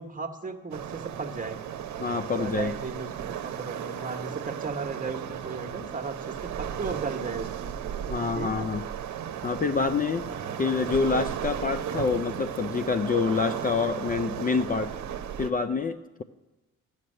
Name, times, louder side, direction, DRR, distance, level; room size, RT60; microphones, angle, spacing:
voice 1, 0.0-1.6 2.3-7.8 8.3-8.7 10.3-10.6, right 4 dB, 25° right, 6 dB, 1.3 m, -36 dB
Waves surf, 0.7-15.5, right 9 dB, 70° right, 0.9 m, -35 dB
voice 2, 2.0-2.7 8.1-8.8 9.4-10.3 10.6-14.9 15.4-16.2, left 5 dB, 30° left, 9 dB, 0.5 m, -27 dB
13.0 x 6.5 x 9.8 m, 1.1 s
cardioid pair, 90°, 30 cm